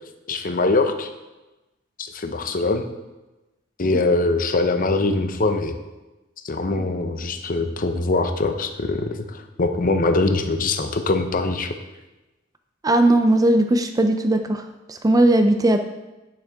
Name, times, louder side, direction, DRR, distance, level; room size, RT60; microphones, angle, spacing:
voice 1, 0.3-1.1 2.0-2.9 3.8-5.8 6.4-11.7, left 3 dB, 45° left, 7 dB, 0.7 m, -22 dB
voice 2, 12.8-15.8, right 1 dB, 20° right, 7 dB, 0.4 m, -18 dB
9.0 x 7.1 x 3.5 m, 1.1 s
head